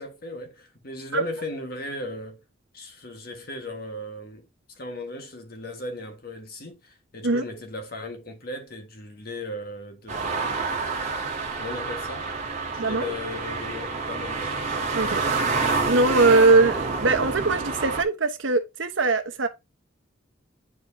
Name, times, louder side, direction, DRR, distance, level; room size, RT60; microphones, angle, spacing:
voice 1, 0.0-2.4 2.7-4.4 4.7-10.6 11.5-12.3 12.7-14.5, left 2 dB, 50° left, 1.5 m, -37 dB
sound 1, 10.1-18.0, right 4 dB, 35° right, 1.7 m, -28 dB
voice 2, 15.9-19.5, right 3 dB, 75° right, 1.1 m, -21 dB
9.5 x 4.7 x 2.7 m
head